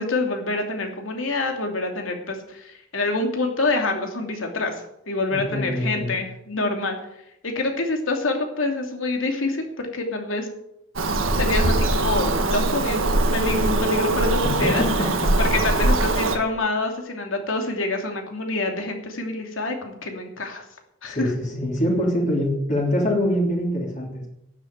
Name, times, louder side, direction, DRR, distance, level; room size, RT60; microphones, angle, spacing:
voice 1, 0.0-7.0 7.4-10.5 11.4-14.8 15.4-20.6 21.0-21.3, left 2 dB, 80° left, 3 dB, 2.9 m, -26 dB
voice 2, 5.3-6.1 14.0-15.3 21.0-24.3, equal, 40° left, -1 dB, 3.3 m, -25 dB
Bird vocalization bird call bird song, 11.0-16.4, right 2 dB, 85° right, 1.6 m, -22 dB
12.0 x 8.1 x 9.5 m, 0.80 s
head